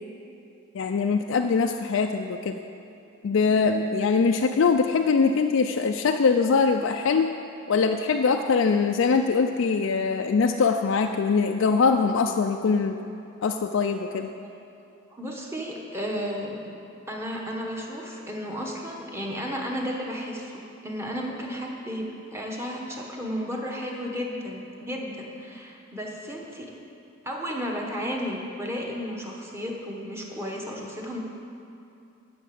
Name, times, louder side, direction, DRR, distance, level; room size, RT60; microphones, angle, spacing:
voice 1, 0.7-2.6 3.2-7.3 7.7-13.0 13.4-14.3, left 5 dB, 60° left, 4 dB, 0.4 m, -22 dB
voice 2, 15.1-16.6 17.1-26.7 27.2-31.2, equal, 10° right, -1 dB, 1.2 m, -33 dB
11.0 x 5.9 x 7.5 m, 2.6 s
head